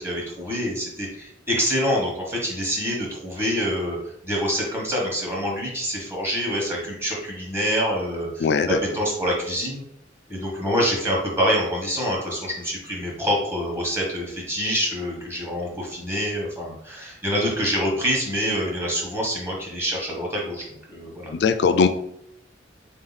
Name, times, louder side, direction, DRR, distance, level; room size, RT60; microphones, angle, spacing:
voice 1, 0.0-9.8 10.3-20.6 20.9-21.3, equal, 15° right, -2 dB, 1.0 m, -26 dB
voice 2, 8.4-8.8 21.3-21.9, left 5 dB, 65° left, 9 dB, 0.4 m, -19 dB
3.8 x 2.7 x 4.0 m, 0.74 s
head